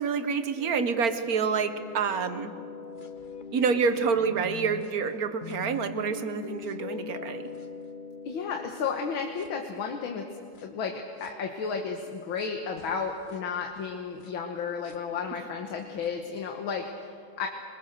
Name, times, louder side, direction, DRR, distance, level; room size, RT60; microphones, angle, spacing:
voice 1, 0.0-2.5 3.5-7.5, right 5 dB, 55° right, 9 dB, 1.4 m, -27 dB
sound 1, 0.6-4.9 5.4-11.3 12.4-12.5 12.8-16.1, left 4 dB, 40° left, 0.7 m, -43 dB
voice 2, 8.3-10.3 10.6-17.5, left 5 dB, 80° left, 3 dB, 2.1 m, -33 dB
23.5 x 21.5 x 6.7 m, 2.4 s
omnidirectional pair, 2.2 m